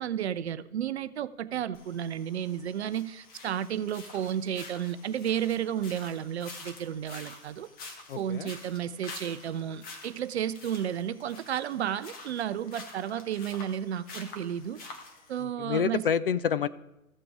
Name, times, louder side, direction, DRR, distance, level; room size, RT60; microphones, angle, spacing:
voice 1, 0.0-7.7 8.1-14.8 15.3-16.0, right 9 dB, 50° right, 0.6 m, -32 dB
sound 1, 1.7-15.4, left 3 dB, 20° left, 1.5 m, -48 dB
voice 2, 8.1-8.5 15.6-16.7, left 7 dB, 45° left, 0.4 m, -27 dB
15.0 x 5.9 x 4.9 m
figure-of-eight pair, 120°, 42 cm